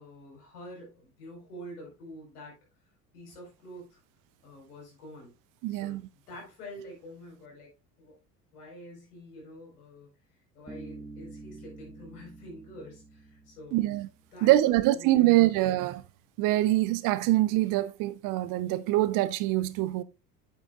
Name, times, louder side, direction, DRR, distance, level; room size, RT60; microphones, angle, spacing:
voice 1, 0.0-2.5 3.1-4.0 4.4-5.3 5.7-7.7 8.0-8.1 8.5-10.1 10.5-14.0 14.3-15.5, equal, 70° left, 4.7 m, -46 dB
voice 2, 5.6-6.0 13.7-14.1 14.4-16.0 16.4-20.0, right 16 dB, 45° right, 0.6 m, -24 dB
Bass guitar, 10.7-14.4, right 3 dB, 5° left, 1.5 m, -47 dB
8.7 x 8.3 x 2.4 m
figure-of-eight pair, 65°, 47 cm